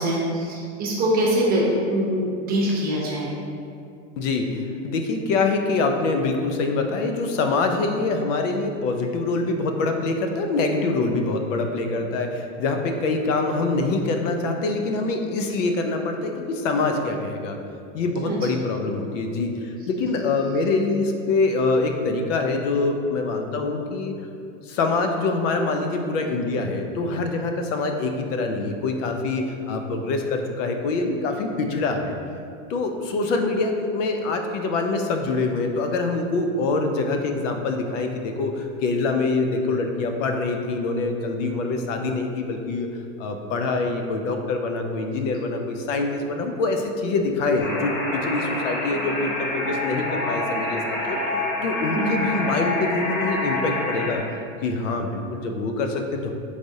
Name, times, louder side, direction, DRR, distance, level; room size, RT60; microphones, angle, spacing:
voice 1, 0.0-3.3 18.2-18.5 51.9-52.2, right 1 dB, 25° right, -4 dB, 0.7 m, -23 dB
voice 2, 4.2-17.6 17.9-24.2 24.6-32.2 32.7-42.9 43.2-51.2 51.6-54.2 54.6-56.3, left 3 dB, 75° left, 4 dB, 0.6 m, -25 dB
sound 1, 47.6-54.2, left 2 dB, 30° left, 0.6 m, -27 dB
5.0 x 3.3 x 2.6 m, 2.5 s
supercardioid pair, 145°, 37 cm